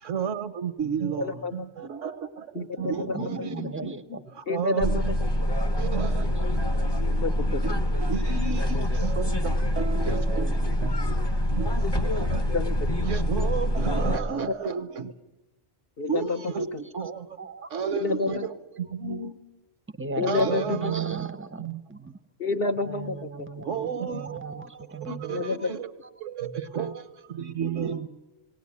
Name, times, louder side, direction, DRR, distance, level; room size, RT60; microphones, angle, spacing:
voice 1, 0.0-5.2 5.5-6.3 7.6-12.5 13.0-15.1 16.1-16.7 16.9-17.4 17.7-19.4 20.3-21.8 23.6-25.9 26.2-28.0, right 6 dB, 80° right, 12 dB, 1.4 m, -32 dB
voice 2, 1.2-1.7 2.5-2.7 3.0-3.2 4.5-5.1 7.1-7.8 12.5-12.8 16.0-16.8 17.9-18.5 20.2-20.9 22.4-23.3 23.5-23.6 25.3-25.7 26.8-26.9, left 3 dB, 55° left, 7 dB, 1.1 m, -29 dB
voice 3, 3.1-4.2 6.4-6.6 14.0-14.5 17.0-17.1 17.4-17.7 18.3-18.5 20.0-22.1 22.8-25.3 27.9-28.1, right 4 dB, 10° right, 10 dB, 0.7 m, -38 dB
sound 1, 4.8-14.2, equal, 25° left, 0.9 m, -25 dB
18.5 x 18.5 x 9.7 m, 1.0 s
omnidirectional pair, 1.3 m